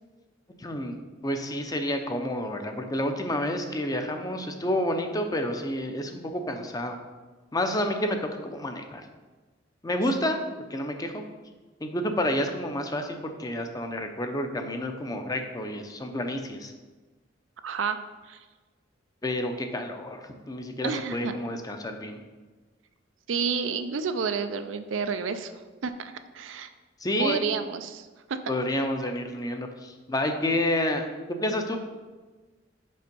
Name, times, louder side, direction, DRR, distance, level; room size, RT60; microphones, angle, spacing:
voice 1, 0.6-1.0 1.2-7.0 7.5-9.0 9.8-11.2 11.8-16.7 19.2-22.2 27.0-27.4 28.5-31.8, left 1 dB, 20° left, 5 dB, 0.6 m, -29 dB
voice 2, 17.6-18.0 18.3-18.4 20.8-21.3 23.3-25.5 25.8-26.7 27.2-28.4, right 5 dB, 85° right, 9 dB, 0.5 m, -30 dB
5.4 x 4.3 x 5.3 m, 1.3 s
head